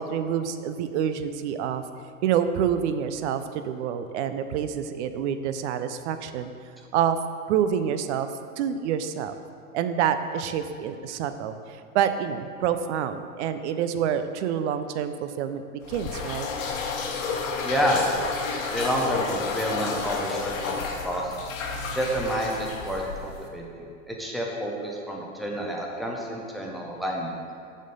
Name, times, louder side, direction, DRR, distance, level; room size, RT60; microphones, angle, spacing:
voice 1, 0.0-1.8 2.2-6.5 6.9-7.2 7.5-8.3 8.6-9.3 9.7-15.6 15.9-16.5, right 8 dB, 55° right, 10 dB, 0.5 m, -27 dB
sound 1, 15.8-23.5, left 4 dB, 65° left, 1.1 m, -31 dB
voice 2, 17.6-18.2 18.7-21.4 21.9-27.4, equal, ahead, -2 dB, 0.5 m, -29 dB
6.1 x 4.4 x 5.3 m, 2.4 s
hypercardioid pair, 130°, 42 cm